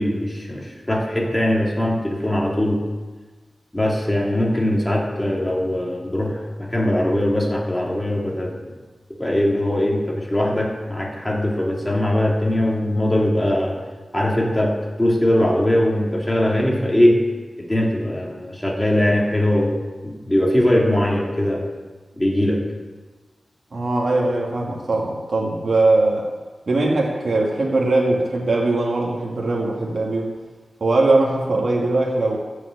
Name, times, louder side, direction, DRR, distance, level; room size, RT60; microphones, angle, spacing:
voice 1, 0.0-2.8 3.7-8.6 9.2-13.8 14.1-17.2 17.6-19.8 20.0-21.6 22.2-22.6, left 1 dB, 10° left, -2 dB, 2.7 m, -21 dB
voice 2, 23.7-26.3 26.7-30.3 30.8-32.4, right 2 dB, 60° right, -3 dB, 2.3 m, -20 dB
13.5 x 6.4 x 8.1 m, 1.3 s
wide cardioid pair, 125°, 0 cm